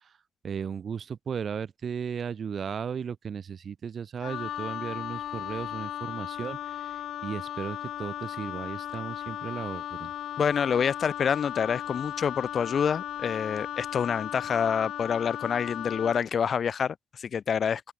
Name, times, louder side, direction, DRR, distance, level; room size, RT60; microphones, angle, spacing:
voice 1, 0.4-6.9 7.2-10.1, right 7 dB, 50° right, 0.9 m, -35 dB
Wind instrument woodwind instrument, 4.2-16.3, left 11 dB, 75° left, 0.5 m, -36 dB
voice 2, 10.4-17.8, left 7 dB, 50° left, 2.2 m, -27 dB
open air
cardioid pair, 100°, 0 cm